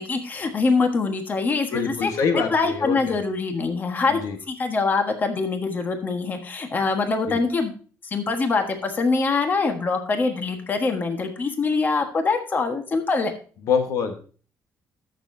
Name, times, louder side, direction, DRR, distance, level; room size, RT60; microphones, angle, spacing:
voice 1, 0.0-2.1 2.5-4.2 4.5-7.7 8.0-13.3, left 4 dB, 30° left, 5 dB, 1.4 m, -24 dB
voice 2, 1.7-3.2 4.1-4.4 7.3-7.4 13.6-14.1, left 6 dB, 70° left, 6 dB, 1.4 m, -25 dB
14.0 x 6.7 x 2.7 m, 0.39 s
cardioid pair, 125°, 6 cm